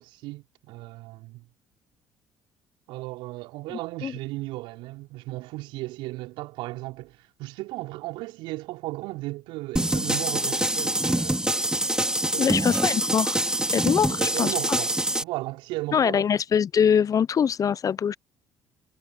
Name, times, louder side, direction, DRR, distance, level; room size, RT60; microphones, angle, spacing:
voice 1, 0.0-1.5 2.9-11.5 12.2-12.7 14.1-14.9 15.2-16.3, right 20 dB, 70° right, 4.9 m, -35 dB
sound 1, 9.8-15.2, right 1 dB, 10° right, 3.9 m, -25 dB
voice 2, 12.4-13.4 13.7-14.8 15.9-18.2, left 7 dB, 40° left, 0.8 m, -23 dB
hypercardioid pair, 50°, 9 cm